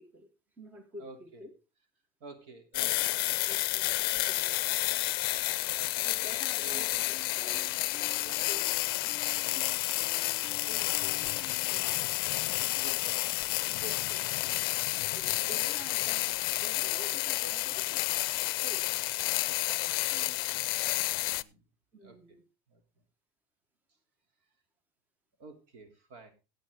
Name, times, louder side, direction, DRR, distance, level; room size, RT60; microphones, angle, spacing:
voice 1, 0.0-1.5 2.8-2.9 3.4-4.8 6.0-8.7 10.7-12.8 13.8-14.4 15.0-18.1 18.5-18.9 21.9-22.4, equal, 15° right, 9 dB, 1.3 m, -50 dB
voice 2, 1.0-1.4 2.2-3.4 5.8-6.1 6.6-6.8 9.5-9.8 12.7-13.2 20.1-21.6 22.0-22.2 22.7-22.8 25.4-26.3, right 3 dB, 65° right, 8 dB, 2.9 m, -51 dB
sound 1, 2.7-21.4, left 21 dB, 90° left, 0.5 m, -30 dB
sound 2, 6.7-11.8, left 2 dB, 30° right, 3.3 m, -53 dB
15.0 x 8.8 x 3.6 m, 0.29 s
cardioid pair, 150°, 12 cm